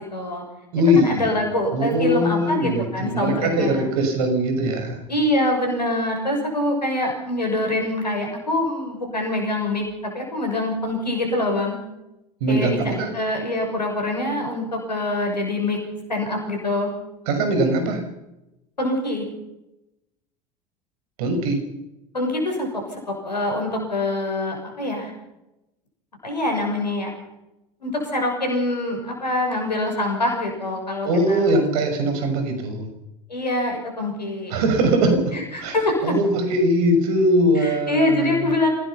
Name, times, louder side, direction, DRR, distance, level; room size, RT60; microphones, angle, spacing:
voice 1, 0.1-0.4 0.9-3.9 5.1-11.8 12.5-15.8 16.1-16.9 18.8-19.2 22.1-22.7 23.1-25.1 26.2-27.1 27.8-31.6 33.3-34.5 35.3-36.1 37.5-38.7, left 1 dB, 90° left, 2 dB, 6.4 m, -25 dB
voice 2, 0.7-1.3 1.7-5.0 12.4-13.1 17.3-18.0 21.2-21.6 31.0-32.9 34.5-35.8 36.0-38.3, equal, 65° right, 6 dB, 6.2 m, -21 dB
26.5 x 17.5 x 5.8 m, 0.93 s
figure-of-eight pair, 75°, 21 cm